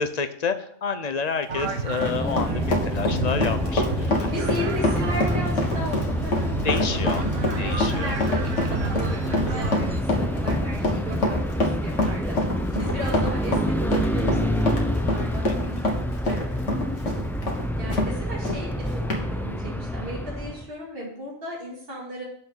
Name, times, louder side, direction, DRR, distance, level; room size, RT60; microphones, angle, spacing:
voice 1, 0.0-4.3 6.6-7.2 7.6-8.1 8.7-8.9 15.4-15.8, left 5 dB, 40° left, 9 dB, 0.7 m, -29 dB
Run, 1.5-18.1 18.5-18.6 19.1-19.2, left 1 dB, 75° left, 2.0 m, -26 dB
sound 1, 1.5-10.0, right 4 dB, 80° right, 1.4 m, -32 dB
sound 2, 2.0-20.7, equal, 5° left, 0.3 m, -28 dB
voice 2, 2.4-2.8 4.3-6.6 6.9-11.4 11.8-12.4 12.8-15.4 16.2-16.6 17.8-22.2, equal, 50° right, -4 dB, 2.6 m, -35 dB
6.9 x 6.0 x 7.6 m, 0.63 s
omnidirectional pair, 1.3 m